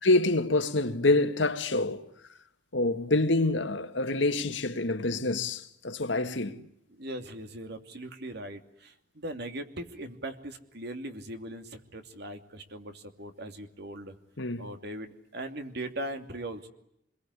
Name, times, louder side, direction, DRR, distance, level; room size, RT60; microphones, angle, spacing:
voice 1, 0.0-2.1 2.7-6.7 14.4-14.7, left 2 dB, 75° left, 2.0 m, -26 dB
voice 2, 6.9-14.1 14.6-16.7, right 1 dB, 60° right, 2.8 m, -40 dB
27.5 x 22.0 x 9.8 m
head